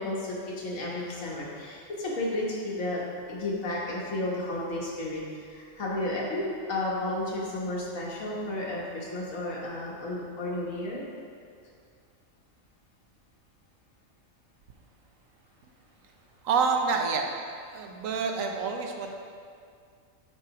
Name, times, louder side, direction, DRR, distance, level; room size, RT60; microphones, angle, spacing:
voice 1, 0.0-3.0 3.3-11.0, left 1 dB, 85° left, -4 dB, 1.6 m, -32 dB
voice 2, 16.4-17.2 17.7-19.1, right 5 dB, 80° right, 3 dB, 1.0 m, -27 dB
8.5 x 4.5 x 2.9 m, 2.2 s
omnidirectional pair, 1.4 m